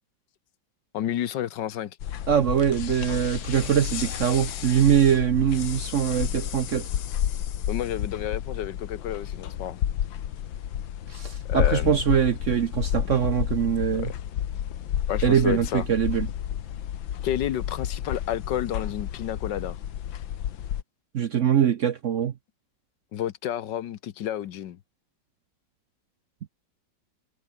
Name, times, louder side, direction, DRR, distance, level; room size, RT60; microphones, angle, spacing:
voice 1, 0.9-1.9 7.7-9.8 11.5-12.0 14.0-14.1 15.1-15.8 17.2-19.8 23.1-24.8, left 11 dB, 70° left, 1.5 m, -30 dB
sound 1, 2.0-20.8, left 10 dB, 90° left, 1.9 m, -31 dB
voice 2, 2.3-6.9 11.1-14.1 15.2-16.3 21.1-22.3, right 9 dB, 55° right, 0.9 m, -23 dB
omnidirectional pair, 2.0 m